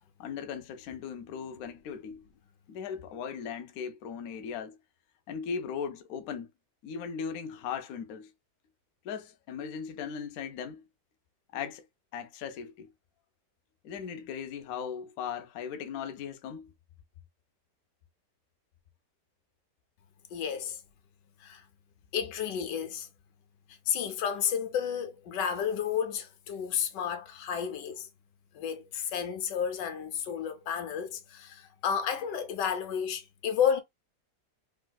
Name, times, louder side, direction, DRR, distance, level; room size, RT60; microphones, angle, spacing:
voice 1, 0.2-2.2 2.7-4.8 5.3-6.5 6.8-8.3 9.0-10.8 11.5-11.8 12.1-12.9 13.8-16.7, left 7 dB, 70° left, 0.9 m, -38 dB
voice 2, 20.3-20.8 21.4-21.6 22.1-23.1 23.9-28.1 28.5-33.8, left 8 dB, 90° left, 1.3 m, -31 dB
3.5 x 2.6 x 2.2 m
omnidirectional pair, 1.8 m